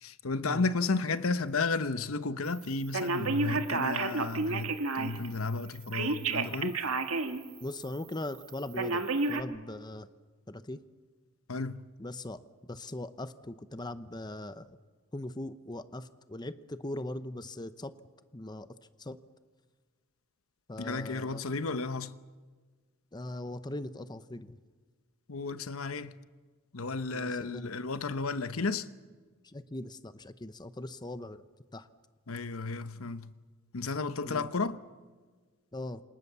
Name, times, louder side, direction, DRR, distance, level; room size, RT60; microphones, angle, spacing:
voice 1, 0.0-6.8 11.5-11.8 20.8-22.1 25.3-26.1 26.7-28.9 32.3-33.3 33.7-34.8, left 3 dB, 85° left, 1.0 m, -33 dB
Telephone, 2.9-5.3 5.9-7.4 7.8-7.9 8.8-9.4, right 3 dB, 75° right, 1.8 m, -30 dB
voice 2, 7.6-9.0 9.3-10.1 10.5-10.8 12.0-12.4 12.7-14.7 15.1-17.9 18.3-18.7 19.0-19.2 20.7-21.4 23.1-24.6 27.1-27.7 29.5-31.4 31.7-31.9 34.2-34.5 35.7-36.0, left 1 dB, 20° left, 0.9 m, -40 dB
27.5 x 26.5 x 6.9 m
head